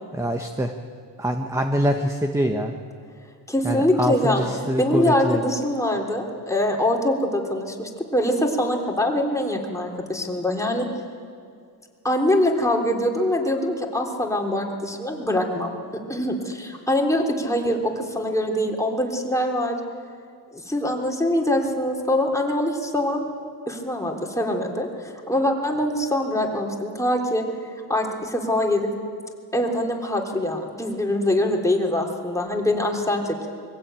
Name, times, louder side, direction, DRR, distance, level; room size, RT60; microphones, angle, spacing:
voice 1, 0.1-0.7 1.2-2.8 3.6-5.4, equal, 10° right, 5 dB, 1.2 m, -24 dB
voice 2, 3.5-4.5 4.8-10.9 12.0-15.7 16.1-19.8 20.5-23.3 23.7-27.4 27.9-28.9 29.5-33.5, left 1 dB, 10° left, 0 dB, 3.4 m, -23 dB
23.0 x 16.0 x 9.0 m, 2.3 s
cardioid pair, 100°, 40 cm